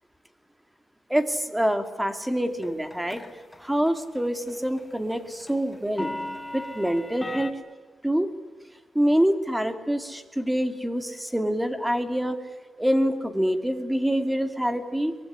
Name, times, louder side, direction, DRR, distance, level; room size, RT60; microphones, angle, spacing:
voice 1, 1.1-3.2 3.6-6.1 6.5-7.6 8.0-8.3 8.9-12.4 12.8-15.2, equal, 5° right, 8 dB, 2.4 m, -25 dB
sound 1, 2.6-3.6 3.9-4.2 4.5-7.5, left 1 dB, 15° left, 1.8 m, -36 dB
24.5 x 22.0 x 9.8 m, 1.4 s
wide cardioid pair, 135°, 0 cm